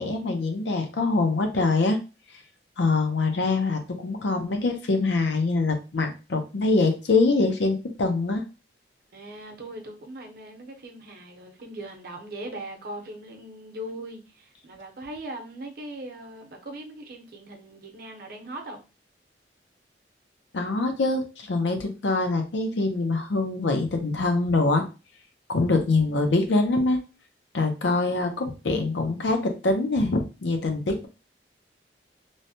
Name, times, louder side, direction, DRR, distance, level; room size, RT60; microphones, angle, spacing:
voice 1, 0.0-2.0 2.8-8.4 20.5-24.8 25.5-27.0 27.5-31.1, left 3 dB, 90° left, 0.6 m, -24 dB
voice 2, 9.1-18.8, right 1 dB, 60° right, 0.7 m, -40 dB
3.1 x 2.1 x 2.7 m
head